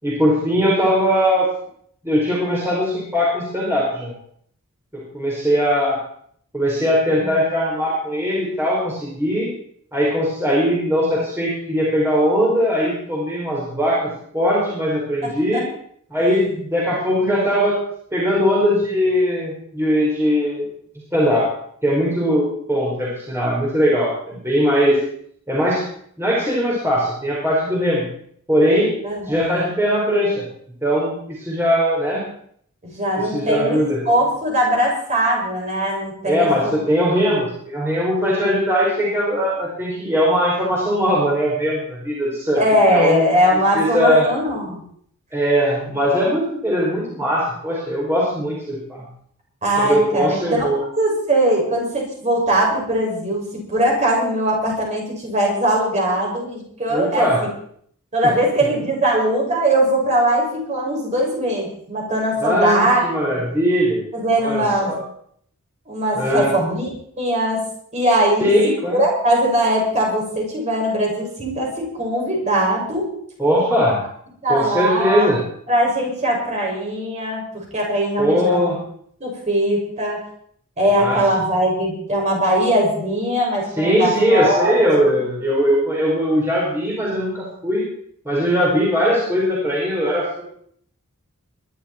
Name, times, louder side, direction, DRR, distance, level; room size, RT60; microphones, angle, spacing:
voice 1, 0.0-1.5 2.0-4.1 4.9-6.0 6.5-9.5 9.9-15.6 16.1-17.7 18.1-20.6 21.1-21.5 21.8-25.0 25.5-25.8 26.2-28.1 28.5-28.9 29.3-30.4 30.8-32.2 33.3-34.0 36.3-42.6 42.9-43.2 43.7-44.3 45.3-49.1 49.8-50.8 56.9-57.4 62.4-64.0 64.4-65.0 66.1-66.5 68.4-69.0 73.4-74.0 74.5-75.4 78.2-78.8 81.0-81.2 83.8-87.9 88.2-90.4, equal, 10° right, -5 dB, 4.7 m, -20 dB
voice 2, 29.0-29.8 32.8-36.7 42.5-44.8 49.6-50.7 51.0-57.3 58.1-63.0 64.1-65.0 65.9-66.9 67.2-67.6 67.9-68.5 68.9-73.1 74.4-75.3 75.7-78.8 79.2-80.2 80.8-84.7, right 1 dB, 30° right, -2 dB, 6.5 m, -20 dB
22.0 x 12.0 x 4.5 m, 0.64 s
head